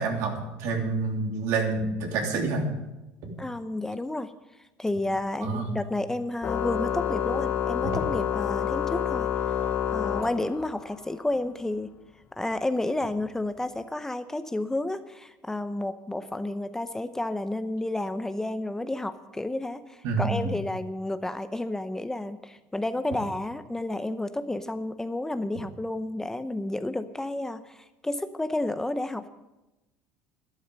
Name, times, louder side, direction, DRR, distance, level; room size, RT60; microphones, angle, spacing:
voice 1, 0.0-2.7 3.2-3.3 5.4-5.7 7.8-8.0 20.0-20.5, right 4 dB, 70° right, 1 dB, 3.1 m, -28 dB
voice 2, 3.4-4.3 4.8-9.3 9.9-11.9 12.4-29.3, left 2 dB, 10° left, 11 dB, 0.7 m, -31 dB
Organ, 6.4-10.9, left 8 dB, 40° left, 1.2 m, -28 dB
12.5 x 11.0 x 6.8 m, 1.0 s
supercardioid pair, 100°, 6 cm